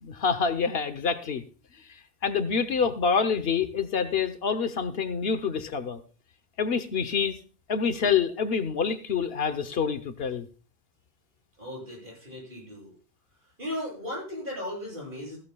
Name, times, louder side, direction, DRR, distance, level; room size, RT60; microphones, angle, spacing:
voice 1, 0.0-1.4 1.9-6.0 6.6-7.4 7.7-10.5, left 6 dB, 75° left, 11 dB, 1.1 m, -27 dB
voice 2, 11.6-12.9 13.6-15.4, left 1 dB, 55° right, -4 dB, 8.1 m, -36 dB
15.5 x 14.0 x 2.3 m, 0.37 s
omnidirectional pair, 1.0 m